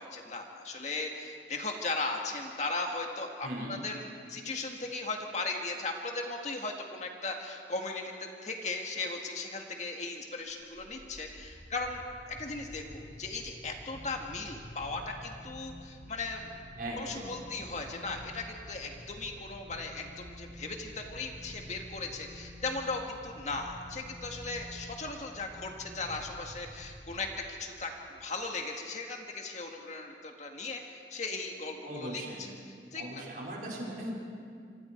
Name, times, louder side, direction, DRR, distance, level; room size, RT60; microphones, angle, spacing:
voice 1, 0.0-4.0 4.3-12.0 12.3-16.5 17.0-32.5 32.9-33.2, left 3 dB, 40° left, 2 dB, 2.0 m, -37 dB
voice 2, 3.4-3.8 16.8-17.4 31.8-32.5 33.0-34.1, right 1 dB, 50° right, -3 dB, 5.2 m, -39 dB
sound 1, 10.4-27.8, equal, 25° right, 7.3 m, -49 dB
27.0 x 25.5 x 4.6 m, 2.2 s
head